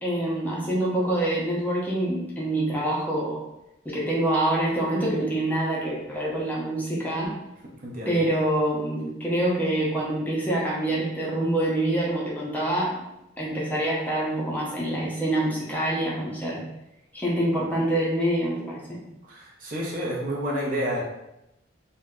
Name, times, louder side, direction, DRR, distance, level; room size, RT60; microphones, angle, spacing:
voice 1, 0.0-3.4 3.8-7.3 8.1-13.0 13.4-16.6 17.1-19.0, right 1 dB, 10° left, -5 dB, 0.6 m, -26 dB
voice 2, 7.8-8.2 19.3-21.0, equal, 45° right, -3 dB, 0.6 m, -29 dB
2.6 x 2.1 x 3.6 m, 0.88 s
head